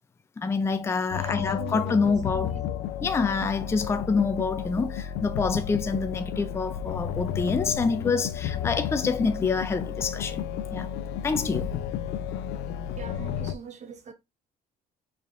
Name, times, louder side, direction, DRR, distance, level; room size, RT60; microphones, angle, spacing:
voice 1, 0.4-2.5 3.0-10.4 10.7-10.9 11.2-11.7, left 4 dB, 15° left, 0.4 m, -27 dB
sound 1, 1.1-13.6, left 9 dB, 90° left, 0.4 m, -32 dB
voice 2, 1.1-2.8 13.0-14.1, right 7 dB, 45° right, 0.9 m, -41 dB
4.6 x 3.5 x 2.4 m
cardioid pair, 110°, 17 cm